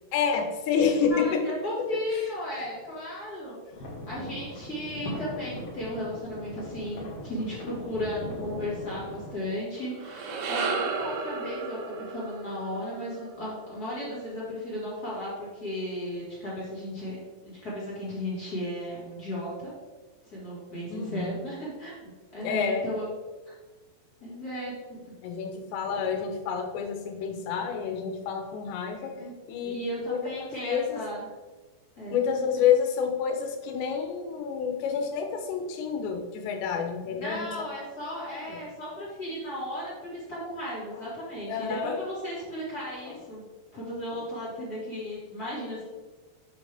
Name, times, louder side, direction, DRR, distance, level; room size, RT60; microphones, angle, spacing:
voice 1, 0.1-1.4 2.5-2.7 10.3-10.5 20.9-21.3 22.4-22.9 25.2-29.1 29.5-29.8 30.1-31.0 32.1-37.5 38.1-38.2 38.5-38.6 41.5-41.9 44.1-44.2, left 7 dB, 85° left, 4 dB, 3.2 m, -28 dB
voice 2, 1.1-3.6 4.1-19.7 20.3-23.1 23.5-23.6 24.2-25.0 29.1-29.3 29.6-31.2 32.0-32.2 37.1-43.4 43.7-45.9, left 1 dB, 30° left, -7 dB, 2.0 m, -35 dB
sound 1, 3.7-9.3, left 1 dB, 50° left, 2.1 m, -39 dB
sound 2, 9.8-14.3, right 4 dB, 80° right, 2.8 m, -34 dB
7.9 x 6.4 x 3.5 m, 1.3 s
omnidirectional pair, 4.9 m